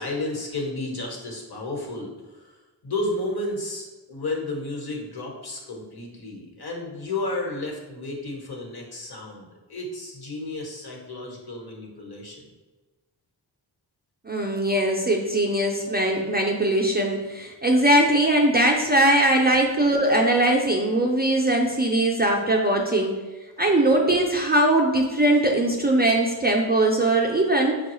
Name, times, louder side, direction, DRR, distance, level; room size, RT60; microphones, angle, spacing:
voice 1, 0.0-12.4 23.7-23.8, left 2 dB, 50° left, 0 dB, 1.2 m, -32 dB
voice 2, 14.3-23.1 23.6-27.8, right 1 dB, 20° right, 0 dB, 0.5 m, -21 dB
5.2 x 2.3 x 3.0 m, 1.2 s
cardioid pair, 60°, 48 cm